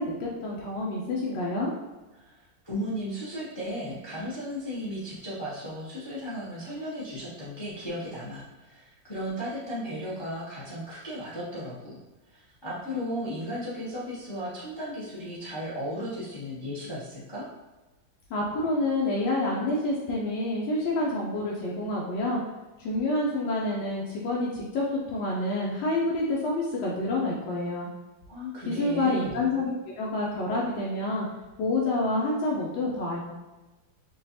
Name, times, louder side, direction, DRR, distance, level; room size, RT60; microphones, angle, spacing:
voice 1, 0.0-1.7 18.3-22.4 22.8-27.9 28.7-31.3 31.6-33.2, left 2 dB, 90° left, -4 dB, 1.4 m, -28 dB
voice 2, 2.2-12.0 12.3-17.5 28.3-29.4, equal, 45° left, -8 dB, 0.3 m, -35 dB
5.1 x 2.3 x 2.8 m, 1.1 s
omnidirectional pair, 2.0 m